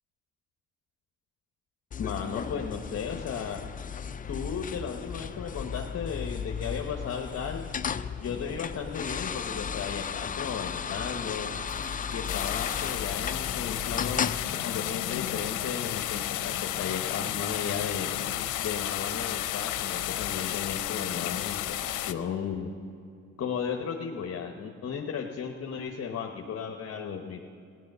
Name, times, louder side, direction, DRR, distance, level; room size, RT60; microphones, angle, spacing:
sound 1, 1.9-14.4, left 7 dB, 30° left, 0.4 m, -35 dB
voice 1, 2.0-3.6 4.3-7.7 8.2-11.5 12.1-14.3 14.6-18.1 18.6-21.6 22.1-22.7 23.4-27.4, left 6 dB, 55° left, 1 dB, 1.1 m, -35 dB
Chatter / Coin (dropping), 11.0-18.0, right 1 dB, 90° right, 3.5 m, -53 dB
sound 2, 12.3-22.1, left 13 dB, 90° left, 0.7 m, -32 dB
15.5 x 11.0 x 6.7 m, 2.5 s
cardioid pair, 90°, 30 cm